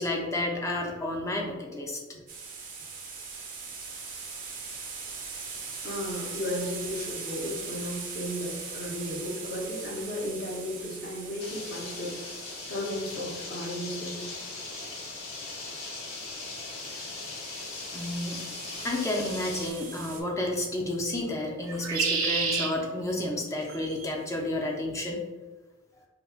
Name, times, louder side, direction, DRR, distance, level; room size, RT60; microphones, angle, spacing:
voice 1, 0.0-2.0 17.9-18.4 18.8-25.2, left 1 dB, 15° left, 0 dB, 0.5 m, -31 dB
sound 1, 2.3-13.7 16.7-20.2, right 5 dB, 40° right, 0.6 m, -41 dB
voice 2, 5.8-12.4 12.7-14.3, left 1 dB, 50° left, -4 dB, 1.0 m, -34 dB
sound 2, 11.4-19.7, left 3 dB, 90° left, 0.9 m, -39 dB
sound 3, 17.0-17.1 19.5-19.9 21.7-22.7 23.6-24.1, right 5 dB, 85° right, 0.5 m, -30 dB
5.2 x 2.3 x 2.4 m, 1.2 s
head